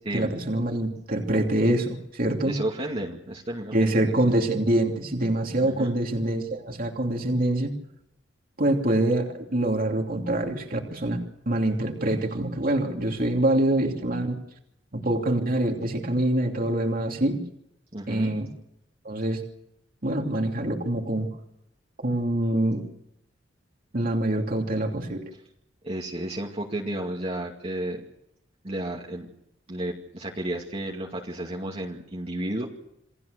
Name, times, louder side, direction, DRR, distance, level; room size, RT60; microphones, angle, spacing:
voice 1, 0.1-2.5 3.7-7.7 8.6-14.4 14.9-17.4 18.1-18.5 19.0-19.4 20.0-21.3 22.0-22.8 23.9-25.3, right 1 dB, 50° right, 2 dB, 2.9 m, -25 dB
voice 2, 2.4-4.1 5.6-6.0 17.9-18.4 25.8-28.0 28.6-29.3 29.7-32.7, right 1 dB, 35° right, -2 dB, 2.3 m, -32 dB
28.5 x 19.0 x 6.8 m, 0.80 s
head